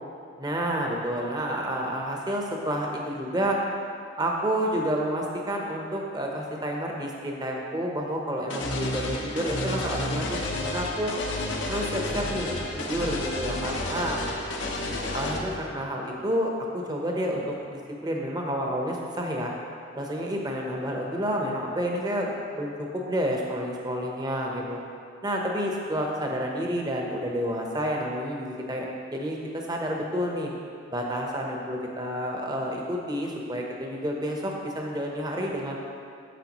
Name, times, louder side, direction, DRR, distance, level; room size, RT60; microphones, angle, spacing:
voice 1, 0.4-3.6 4.2-11.1 11.7-14.2 15.1-19.5 19.9-24.8 25.2-30.5 30.9-35.8, equal, 20° right, -1 dB, 0.8 m, -29 dB
sound 1, 8.5-15.4, left 1 dB, 80° left, 0.9 m, -31 dB
9.2 x 6.8 x 3.0 m, 2.3 s
head